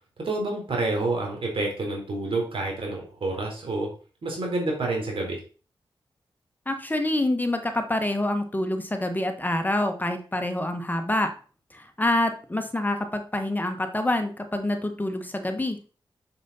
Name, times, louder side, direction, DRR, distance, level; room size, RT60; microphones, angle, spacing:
voice 1, 0.2-3.9 4.2-5.4, right 2 dB, 70° right, 0 dB, 3.8 m, -28 dB
voice 2, 6.7-11.3 11.7-16.0, left 1 dB, 20° left, 6 dB, 1.3 m, -27 dB
7.5 x 6.7 x 4.2 m, 0.38 s
cardioid pair, 60°, 9 cm